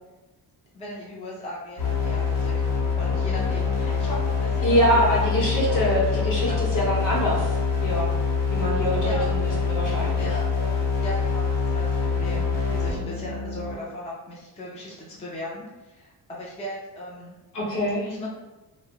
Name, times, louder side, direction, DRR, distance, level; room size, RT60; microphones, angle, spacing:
voice 1, 0.7-2.5 2.9-5.3 5.7-6.6 9.0-9.6 10.2-17.4 18.0-18.3, left 1 dB, 15° left, -6 dB, 0.4 m, -37 dB
sound 1, 1.8-13.7, left 5 dB, 85° left, 1.0 m, -25 dB
voice 2, 4.6-7.5 7.8-8.1 8.5-10.3 17.5-18.1, equal, 50° left, -4 dB, 0.8 m, -24 dB
2.5 x 2.0 x 2.8 m, 1.1 s
wide cardioid pair, 150°, 40 cm